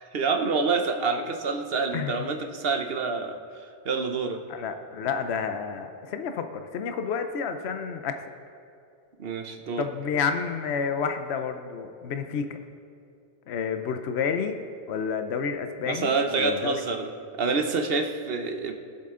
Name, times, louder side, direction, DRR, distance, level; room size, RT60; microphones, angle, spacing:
voice 1, 0.0-3.4 3.8-4.4 9.2-9.9 15.9-17.1 17.4-18.7, right 4 dB, 60° right, 5 dB, 1.1 m, -27 dB
voice 2, 4.5-8.2 9.8-12.6 13.5-14.6 14.9-16.7, left 6 dB, 75° left, 7 dB, 0.9 m, -30 dB
20.5 x 7.7 x 3.7 m, 2.4 s
omnidirectional pair, 1.1 m